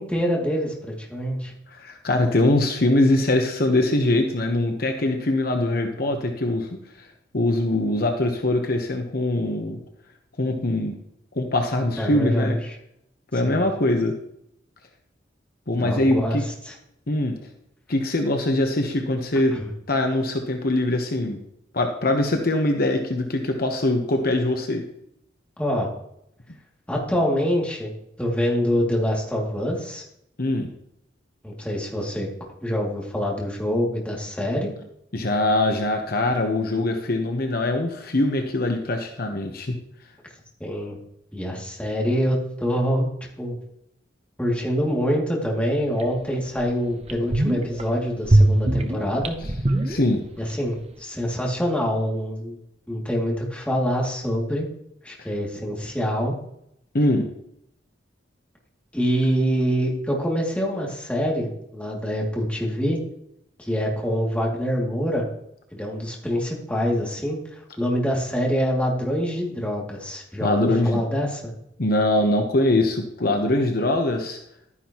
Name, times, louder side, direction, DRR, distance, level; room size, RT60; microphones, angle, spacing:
voice 1, 0.0-1.5 12.0-12.7 13.4-13.6 15.8-16.7 19.5-19.7 25.6-25.9 26.9-27.9 28.2-30.0 31.4-32.3 32.6-34.7 40.6-41.0 41.3-43.1 43.4-43.6 44.4-49.3 50.4-52.6 52.9-54.7 55.0-56.3 58.9-63.0 63.6-65.3 65.7-71.5, equal, 5° left, -3 dB, 2.5 m, -25 dB
voice 2, 1.7-6.7 7.3-9.8 10.4-10.9 11.4-12.6 13.3-14.1 15.7-16.4 17.1-17.3 17.9-19.6 19.9-21.4 21.7-24.8 30.4-30.7 35.1-39.7 49.9-50.2 56.9-57.2 70.4-71.0 71.8-74.4, left 1 dB, 55° left, 4 dB, 1.1 m, -22 dB
sound 1, 46.0-46.1 46.6-46.7 47.0-47.8 48.2-50.5 50.8-50.9, right 1 dB, 35° right, 0.9 m, -21 dB
12.0 x 9.9 x 3.0 m, 0.75 s
head